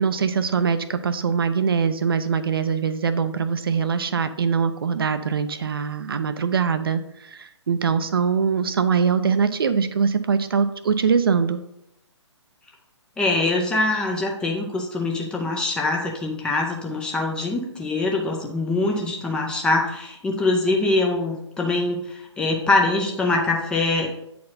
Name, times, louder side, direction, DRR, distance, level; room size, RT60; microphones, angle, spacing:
voice 1, 0.0-11.6, right 6 dB, 50° right, 10 dB, 0.5 m, -22 dB
voice 2, 13.2-24.1, left 2 dB, 5° left, 0 dB, 0.4 m, -23 dB
8.3 x 4.3 x 4.0 m, 0.80 s
figure-of-eight pair, 130°, 15 cm